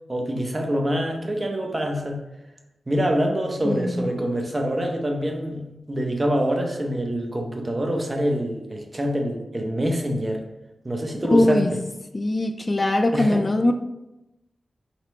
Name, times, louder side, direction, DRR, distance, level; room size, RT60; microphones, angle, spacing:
voice 1, 0.1-2.2 2.9-10.4 10.8-11.8 13.1-13.4, equal, 35° right, 2 dB, 0.8 m, -25 dB
voice 2, 3.6-4.1 11.3-11.7 12.1-13.7, left 1 dB, 40° left, 7 dB, 0.3 m, -21 dB
3.0 x 2.9 x 4.2 m, 0.94 s
cardioid pair, 40°, 0 cm